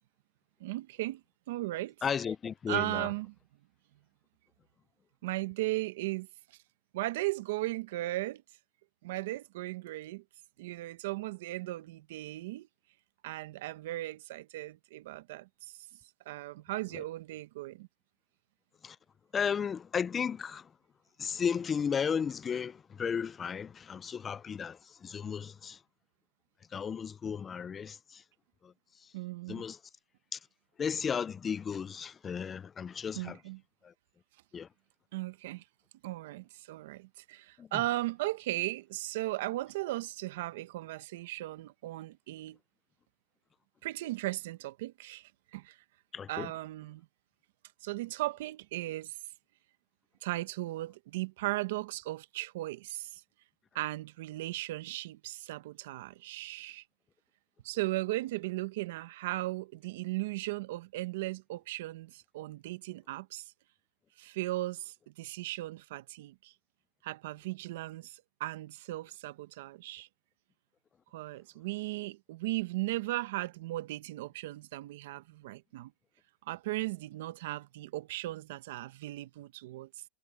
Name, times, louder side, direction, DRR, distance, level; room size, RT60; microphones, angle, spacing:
voice 1, 0.6-1.2 1.5-1.9 2.7-3.3 5.2-6.3 6.9-8.4 9.0-10.2 10.6-12.7 13.2-15.9 16.2-17.9 29.1-29.6 33.1-33.6 35.1-35.6 36.0-42.6 43.8-45.8 46.3-47.1 47.8-49.2 50.2-53.2 53.7-56.8 57.6-63.5 64.2-66.5 67.0-70.1 71.1-75.9 76.5-80.0, right 18 dB, 70° right, 1.0 m, -37 dB
voice 2, 2.0-3.1 16.9-17.0 18.8-19.0 19.3-20.7 21.2-25.8 26.7-28.2 28.6-28.7 29.5-29.8 30.3-30.4 30.8-33.4 33.8-33.9 34.5-34.7 37.6-37.7 46.1-46.5, left 7 dB, 20° left, 0.4 m, -34 dB
supercardioid pair, 145°, 0 cm